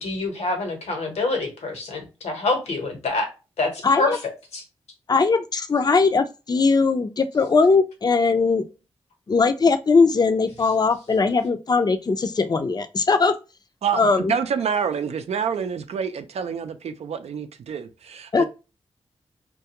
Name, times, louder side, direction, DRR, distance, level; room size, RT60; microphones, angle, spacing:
voice 1, 0.0-3.3 3.6-4.6, left 2 dB, 80° left, 1.0 m, -26 dB
voice 2, 3.8-4.2 5.1-8.6 9.3-13.3 13.9-14.3 18.3-18.4, left 4 dB, 35° left, 0.5 m, -20 dB
voice 3, 13.8-18.4, right 7 dB, 75° right, 0.5 m, -27 dB
2.3 x 2.3 x 2.9 m
supercardioid pair, 45°, 11 cm